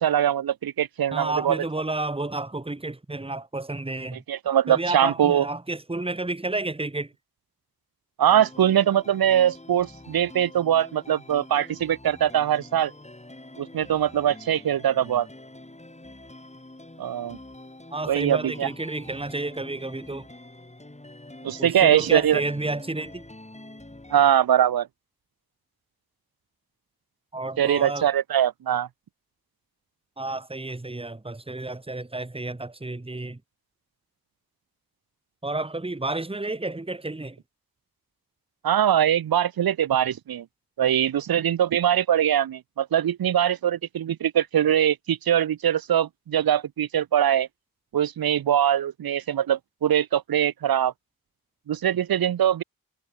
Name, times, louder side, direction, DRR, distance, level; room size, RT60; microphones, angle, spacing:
voice 1, 0.0-1.6 4.3-5.5 8.2-12.9 13.6-15.3 17.0-17.4 18.1-18.7 21.4-22.4 24.1-24.9 27.6-28.9 38.6-40.4 40.8-47.5 47.9-50.9 51.7-52.6, right 10 dB, 75° right, 0.6 m, -22 dB
voice 2, 1.1-4.2 4.7-7.1 17.9-20.3 21.6-23.2 27.3-28.1 30.2-33.4 35.4-37.4, right 2 dB, 15° right, 1.5 m, -31 dB
sound 1, 8.3-24.3, left 1 dB, 20° left, 5.2 m, -46 dB
wide cardioid pair, 95°, 37 cm